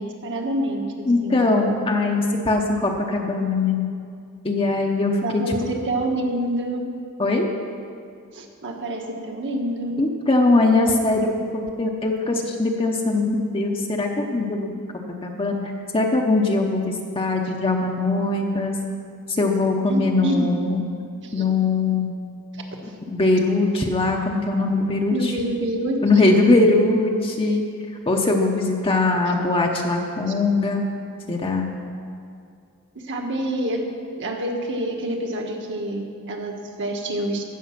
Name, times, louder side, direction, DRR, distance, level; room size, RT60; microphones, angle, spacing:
voice 1, 0.0-1.4 5.2-6.8 8.3-9.9 19.9-20.5 21.2-21.4 22.8-22.9 25.1-26.0 29.3-29.4 33.1-33.8 34.2-37.4, right 1 dB, 55° right, 1 dB, 1.5 m, -27 dB
voice 2, 1.1-3.8 4.4-5.5 7.2-7.5 10.0-14.7 15.2-15.6 15.9-18.7 19.3-20.8 21.3-22.1 23.0-25.3 26.0-27.6 28.1-30.8 31.3-31.7, left 2 dB, 25° left, 1 dB, 0.8 m, -21 dB
16.0 x 6.7 x 6.0 m, 2.3 s
head